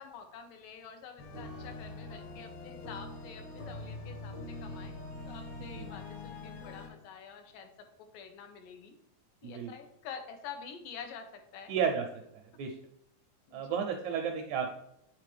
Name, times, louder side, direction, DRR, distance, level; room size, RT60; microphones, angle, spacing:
voice 1, 0.0-4.4 4.6-4.9 5.3-7.7 8.1-9.0 9.4-11.3 11.5-11.7 13.5-13.6 14.1-14.2, left 6 dB, 80° left, 5 dB, 2.5 m, -47 dB
sound 1, 1.2-6.9, left 2 dB, 60° left, 2.3 m, -43 dB
voice 2, 11.7-12.0 12.6-12.8 13.5-14.7, right 7 dB, 80° right, 3 dB, 1.7 m, -32 dB
8.1 x 3.9 x 3.3 m, 0.77 s
omnidirectional pair, 3.8 m